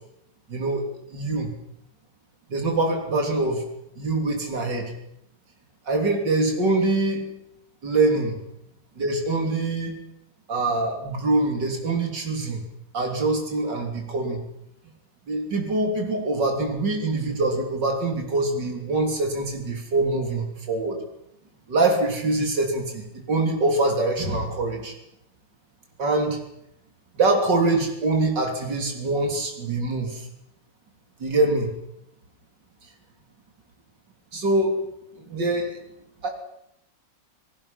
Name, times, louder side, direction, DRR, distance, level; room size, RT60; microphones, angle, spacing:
voice 1, 0.5-0.8 1.1-1.5 2.5-3.6 4.0-4.9 5.9-7.2 7.8-8.4 9.0-9.9 10.5-12.6 12.9-14.4 15.3-21.0 21.7-24.9 26.0-26.4 27.2-30.3 31.2-31.7 34.3-34.8 35.2-35.8 36.2-36.3, right 2 dB, 70° right, 2 dB, 4.0 m, -24 dB
29.0 x 19.0 x 5.9 m, 0.81 s
omnidirectional pair, 2.0 m